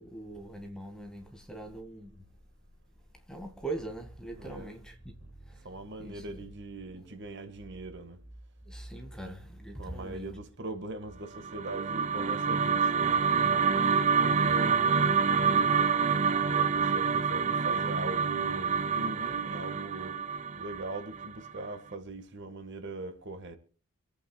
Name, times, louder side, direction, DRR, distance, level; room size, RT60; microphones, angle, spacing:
voice 1, 0.0-2.2 3.3-5.7 6.0-6.4 7.0-7.1 8.6-10.3, right 2 dB, 5° left, 1.9 m, -42 dB
voice 2, 4.4-4.7 5.2-5.3 5.6-8.2 9.8-15.9 16.4-20.2 20.5-23.6, right 2 dB, 50° right, 1.6 m, -41 dB
sound 1, 11.4-21.7, right 6 dB, 30° right, 0.5 m, -27 dB
26.0 x 8.9 x 2.3 m
head